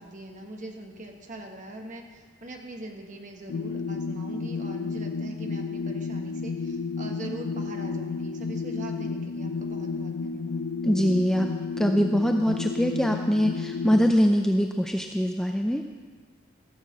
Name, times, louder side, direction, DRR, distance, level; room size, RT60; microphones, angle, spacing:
voice 1, 0.0-10.7, right 1 dB, 40° right, 2 dB, 1.4 m, -42 dB
sound 1, 3.5-14.1, left 4 dB, 80° left, 0.4 m, -32 dB
voice 2, 10.8-11.5 11.8-15.8, equal, 5° left, 4 dB, 0.4 m, -23 dB
14.5 x 6.6 x 7.4 m, 1.5 s
head